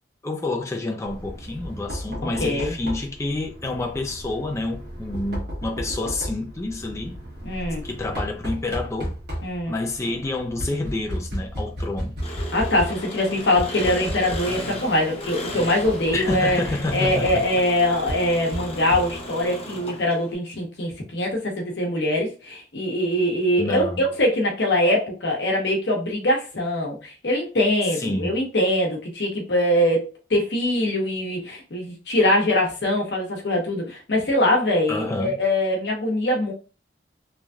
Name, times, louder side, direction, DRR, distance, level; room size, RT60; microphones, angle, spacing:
voice 1, 0.2-7.2 7.8-9.2 9.7-12.1 16.1-17.4 23.6-24.0 28.0-28.4 34.9-35.4, left 2 dB, 15° left, 0.4 m, -28 dB
Knock, 1.1-19.5, equal, 60° right, 1.4 m, -34 dB
voice 2, 2.4-2.7 7.4-7.8 9.4-9.7 12.5-16.6 16.9-36.5, left 1 dB, 70° left, 0.9 m, -23 dB
Engine, 12.2-20.3, equal, 35° left, 0.8 m, -35 dB
3.1 x 2.6 x 2.3 m
head